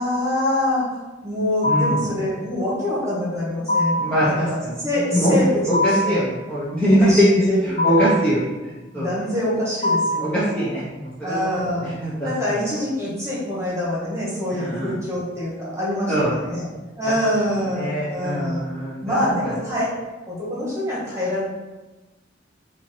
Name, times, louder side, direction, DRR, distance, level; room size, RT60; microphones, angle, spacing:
voice 1, 0.0-4.6 4.8-5.5 5.8-6.2 7.0-8.0 8.9-10.7 11.2-11.9 12.2-16.7 17.0-18.6 19.0-19.9 20.3-21.4, left 1 dB, 15° right, -7 dB, 1.5 m, -25 dB
sound 1, 1.6-2.1 3.7-4.2 5.7-6.2 7.8-8.3 9.8-10.3, left 1 dB, 35° left, 0.8 m, -21 dB
voice 2, 1.6-2.1 4.0-5.4 5.7-9.1 10.2-12.3 14.5-14.9 16.1-16.5 17.0-17.1 17.7-19.5, equal, 5° left, -10 dB, 0.8 m, -22 dB
5.5 x 2.7 x 3.2 m, 1.1 s
head